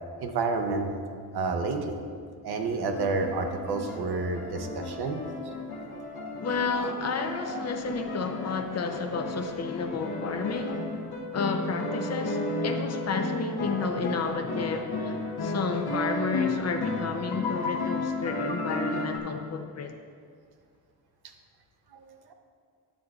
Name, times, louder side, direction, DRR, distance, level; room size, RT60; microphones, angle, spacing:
voice 1, 0.2-0.9 1.3-2.0 2.4-5.2 21.9-22.3, right 3 dB, 75° right, 5 dB, 0.8 m, -29 dB
sound 1, 3.0-19.2, left 2 dB, 70° left, 1.0 m, -33 dB
voice 2, 6.4-11.0 11.3-19.9, left 4 dB, 40° left, 5 dB, 0.5 m, -31 dB
10.5 x 7.5 x 2.4 m, 2.1 s
wide cardioid pair, 160°, 39 cm